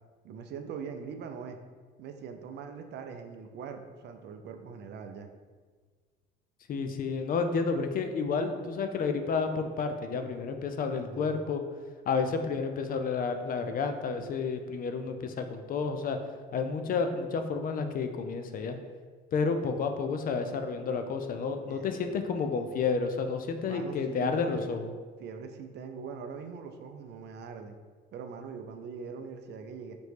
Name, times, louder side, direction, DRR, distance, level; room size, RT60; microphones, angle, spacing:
voice 1, 0.2-1.6 2.0-5.3 10.9-11.4 19.6-19.9 21.6-22.7 23.6-24.8 25.2-27.8 28.1-29.9, right 6 dB, 55° right, 6 dB, 0.4 m, -42 dB
voice 2, 6.7-11.6 12.1-16.2 16.5-18.8 19.3-24.9, left 5 dB, 40° left, 7 dB, 0.4 m, -30 dB
4.2 x 3.0 x 3.3 m, 1.5 s
supercardioid pair, 80°, 21 cm